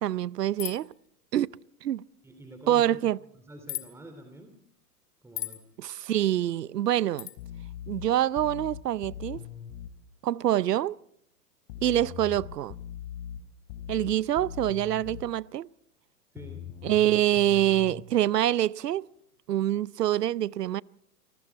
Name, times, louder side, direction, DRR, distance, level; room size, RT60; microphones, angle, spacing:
voice 1, 0.0-0.9 1.3-1.6 1.8-2.0 2.7-3.2 5.8-7.3 7.9-9.4 10.2-10.9 11.8-12.8 13.9-15.7 16.8-19.1 19.5-20.8, right 12 dB, 85° right, 0.7 m, -25 dB
sound 1, 0.6-0.9 3.7-3.9 5.4-5.6 7.2-7.4, left 16 dB, 70° left, 2.4 m, -35 dB
voice 2, 2.2-4.6 5.2-5.7 16.3-16.7, right 1 dB, 5° right, 2.8 m, -47 dB
sound 2, 7.4-10.0 11.7-15.3 16.4-18.0, left 10 dB, 55° left, 4.1 m, -41 dB
28.5 x 20.0 x 4.6 m
hypercardioid pair, 115°, 47 cm